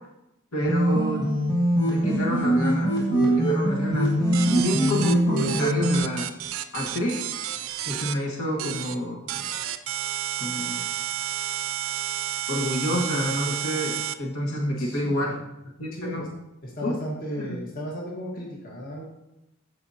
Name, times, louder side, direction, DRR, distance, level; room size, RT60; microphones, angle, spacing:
voice 1, 0.5-1.3 1.8-6.3 6.7-7.4 7.8-9.5 10.4-10.8 12.5-13.9 14.2-15.4 15.8-16.3 16.8-16.9 17.4-17.6, equal, 75° left, -2 dB, 1.7 m, -29 dB
sound 1, 0.6-6.0, right 1 dB, 20° left, 1.9 m, -23 dB
sound 2, 4.3-8.1 8.6-8.9 9.3-14.1, right 12 dB, 65° right, 0.4 m, -31 dB
voice 2, 14.8-15.3 15.9-16.3 16.6-19.0, equal, 40° left, -3 dB, 1.4 m, -35 dB
14.0 x 5.0 x 2.8 m, 0.89 s
head